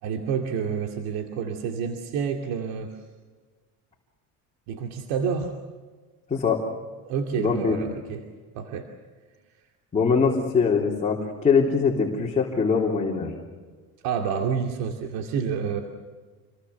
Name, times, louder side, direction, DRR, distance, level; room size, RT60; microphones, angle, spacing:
voice 1, 0.0-2.9 4.7-5.5 7.0-8.2 8.6-8.9 14.0-15.8, right 6 dB, 85° right, 3 dB, 2.5 m, -28 dB
voice 2, 6.3-6.6 7.4-7.8 9.9-13.4, left 5 dB, 20° left, -3 dB, 3.3 m, -22 dB
28.0 x 22.5 x 7.0 m, 1.4 s
cardioid pair, 155°, 36 cm